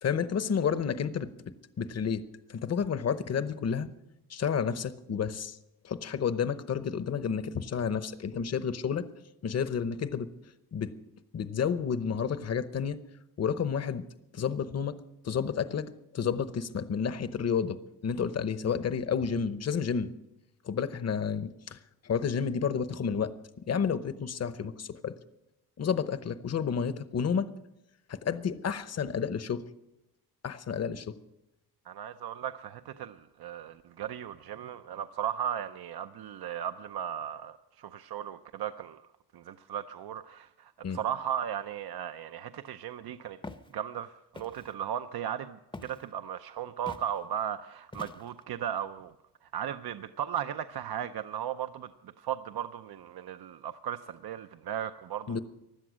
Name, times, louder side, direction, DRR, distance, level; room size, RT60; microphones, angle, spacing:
voice 1, 0.0-1.3 1.8-2.2 2.5-3.9 4.3-5.6 5.8-9.0 9.4-10.3 10.7-10.9 11.3-13.0 13.4-14.0 14.3-15.0 15.2-17.8 18.0-20.1 20.7-21.8 22.0-23.3 23.7-25.1 25.8-27.5 28.1-29.6 30.4-31.2 40.8-41.0 55.3-55.4, left 7 dB, 40° left, 13 dB, 0.8 m, -30 dB
voice 2, 31.9-39.0 39.3-43.4 43.7-49.1 49.5-55.4, right 9 dB, 70° right, 9 dB, 0.7 m, -36 dB
Walk footsteps, 43.4-43.7 44.3-44.7 45.7-46.1 46.9-47.1 47.9-48.4, left 3 dB, 15° left, 0.7 m, -44 dB
16.5 x 11.0 x 6.2 m, 0.88 s
wide cardioid pair, 135°, 40 cm